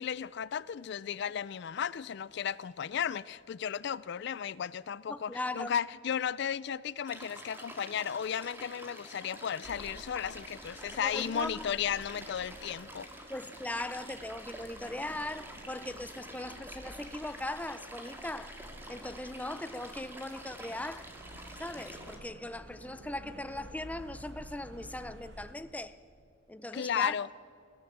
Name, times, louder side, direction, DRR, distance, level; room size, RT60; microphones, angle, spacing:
voice 1, 0.0-13.1 26.7-27.3, left 8 dB, 60° left, 0.4 m, -34 dB
voice 2, 5.1-5.7 11.0-11.7 13.3-18.6 18.9-21.1 21.6-26.0 26.5-27.2, left 1 dB, 10° left, 0.5 m, -39 dB
sound 1, 7.1-22.2, right 1 dB, 10° right, 2.1 m, -48 dB
sound 2, 9.6-25.5, equal, 60° right, 2.0 m, -52 dB
22.5 x 16.5 x 7.3 m
head